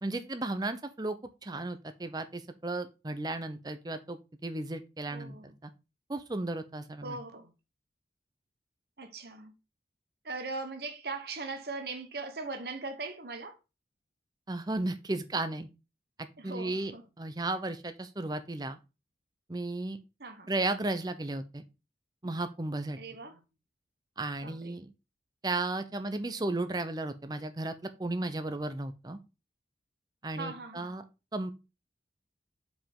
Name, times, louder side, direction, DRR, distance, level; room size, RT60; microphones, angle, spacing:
voice 1, 0.0-1.2 1.4-5.7 6.1-7.2 14.5-15.7 16.4-18.8 19.5-20.0 20.5-21.6 22.2-23.0 24.2-24.9 25.4-27.7 28.0-29.2 30.2-31.0 31.3-31.5, right 2 dB, 20° right, 0.6 m, -34 dB
voice 2, 5.1-5.5 7.0-7.5 9.0-9.5 10.2-13.5 16.4-17.0 20.2-20.5 23.0-23.4 24.4-24.8 30.4-31.0, right 3 dB, 60° right, 1.1 m, -40 dB
5.4 x 5.0 x 3.6 m
head